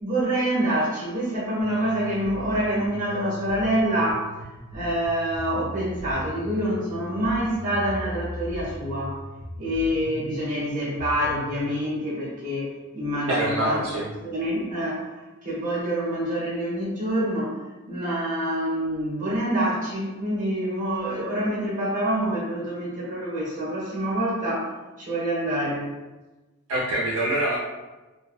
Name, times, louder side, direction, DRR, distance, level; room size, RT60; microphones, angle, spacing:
voice 1, 0.0-4.3 4.7-9.2 9.6-13.9 14.2-15.1 15.4-17.6 17.9-24.7 25.0-25.9, right 1 dB, 35° right, -5 dB, 0.9 m, -26 dB
sound 1, 1.6-11.6, left 1 dB, 15° left, 0.4 m, -39 dB
voice 2, 13.3-14.1 26.7-27.6, right 1 dB, 65° right, -6 dB, 0.5 m, -25 dB
2.5 x 2.0 x 2.4 m, 1.1 s
head